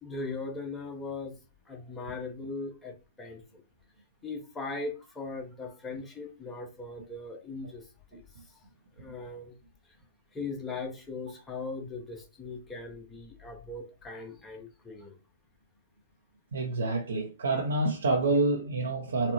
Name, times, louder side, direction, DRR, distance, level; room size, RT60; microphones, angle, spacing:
voice 1, 0.0-1.4 1.7-3.6 4.2-8.2 8.5-8.6 9.0-9.6 10.3-15.2, left 3 dB, 15° left, 2 dB, 1.0 m, -39 dB
voice 2, 16.5-19.3, right 2 dB, 75° right, -1 dB, 0.7 m, -27 dB
4.1 x 2.1 x 2.9 m, 0.32 s
hypercardioid pair, 115°, 0 cm